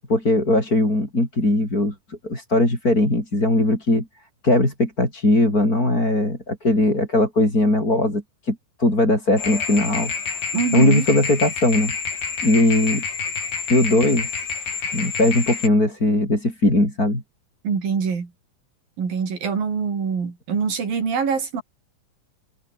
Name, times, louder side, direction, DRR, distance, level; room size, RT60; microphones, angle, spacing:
voice 1, 0.1-4.1 4.4-10.1 10.7-11.9 12.4-13.0 13.7-14.3 14.9-17.2, left 1 dB, 25° left, 8.3 m, -19 dB
sound 1, 9.4-15.7, left 6 dB, 85° left, 6.6 m, -28 dB
voice 2, 10.5-11.1 17.6-18.3 19.0-21.6, right 6 dB, 80° right, 6.2 m, -24 dB
omnidirectional pair, 4.0 m